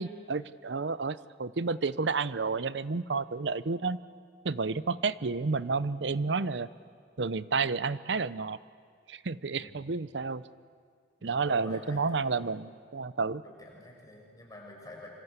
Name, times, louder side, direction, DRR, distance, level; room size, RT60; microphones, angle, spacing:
voice 1, 0.0-4.0 4.4-6.7 7.2-8.6 9.1-10.4 11.2-13.4, right 4 dB, 70° right, 16 dB, 0.7 m, -31 dB
voice 2, 9.6-9.9 11.2-12.5 13.4-15.1, left 1 dB, 20° left, -1 dB, 6.2 m, -48 dB
26.5 x 25.0 x 8.2 m, 2.1 s
head